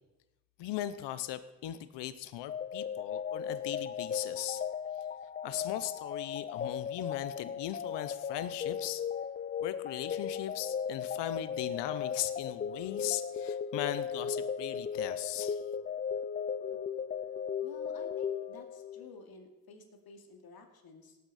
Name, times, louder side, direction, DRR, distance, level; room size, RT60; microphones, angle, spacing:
voice 1, 0.6-4.6 5.4-9.0 9.6-15.6, left 13 dB, 80° left, 13 dB, 0.8 m, -38 dB
sound 1, 2.5-19.1, left 7 dB, 25° left, 0.3 m, -36 dB
voice 2, 17.6-21.2, left 4 dB, 55° left, 3 dB, 2.5 m, -52 dB
18.0 x 8.4 x 4.2 m, 1.0 s
supercardioid pair, 70°, 42 cm